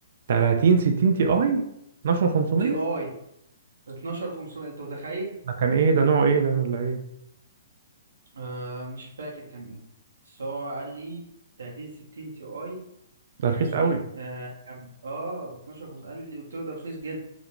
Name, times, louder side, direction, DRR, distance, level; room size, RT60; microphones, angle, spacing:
voice 1, 0.3-1.7 2.0-2.8 5.6-7.0 13.4-14.0, right 5 dB, 60° right, 4 dB, 0.3 m, -21 dB
voice 2, 2.6-3.1 3.9-5.3 8.3-9.8 10.2-11.2 11.6-12.8 13.4-17.2, right 2 dB, 85° right, -2 dB, 0.7 m, -35 dB
2.5 x 2.1 x 2.9 m, 0.78 s
hypercardioid pair, 135°, 0 cm